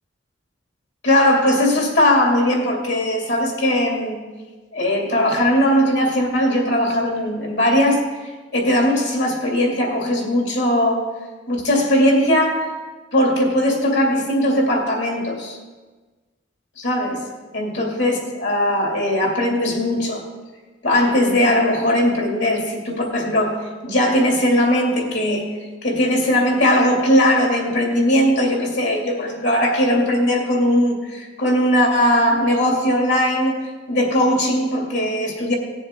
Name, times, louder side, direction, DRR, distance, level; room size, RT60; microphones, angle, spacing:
voice 1, 1.0-4.2 4.7-8.0 8.5-11.0 11.5-12.7 13.1-15.6 16.8-17.2 17.5-20.2 20.8-25.5 25.8-33.5 33.9-35.6, left 1 dB, 65° left, 0 dB, 2.5 m, -19 dB
18.0 x 7.1 x 3.6 m, 1.3 s
head